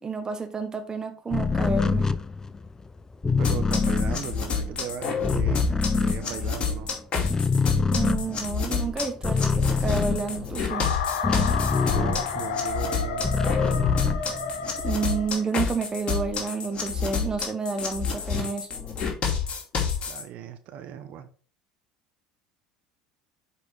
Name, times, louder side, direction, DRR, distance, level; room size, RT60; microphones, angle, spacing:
voice 1, 0.0-2.1 7.9-10.9 14.8-18.7, right 4 dB, 20° right, 1.1 m, -30 dB
sound 1, 1.3-6.9 7.2-12.6 13.0-14.8, left 4 dB, 20° left, 0.6 m, -26 dB
sound 2, 3.4-20.2, left 5 dB, 35° left, 2.6 m, -29 dB
voice 2, 3.4-7.0 11.8-13.4 20.1-21.3, right 10 dB, 55° right, 1.2 m, -37 dB
sound 3, 10.7-15.7, left 5 dB, 70° left, 1.2 m, -31 dB
9.9 x 4.5 x 3.7 m
hypercardioid pair, 75°, 3 cm